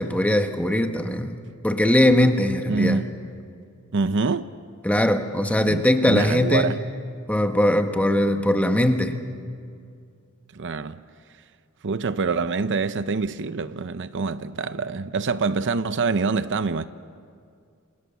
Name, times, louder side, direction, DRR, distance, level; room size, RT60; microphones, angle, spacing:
voice 1, 0.0-3.0 4.8-6.7 7.3-9.2, left 1 dB, 5° left, 1.4 m, -21 dB
voice 2, 2.7-3.1 3.9-4.5 5.6-6.8 10.5-11.0 11.8-16.9, right 4 dB, 55° right, 0.7 m, -25 dB
27.5 x 26.5 x 7.0 m
head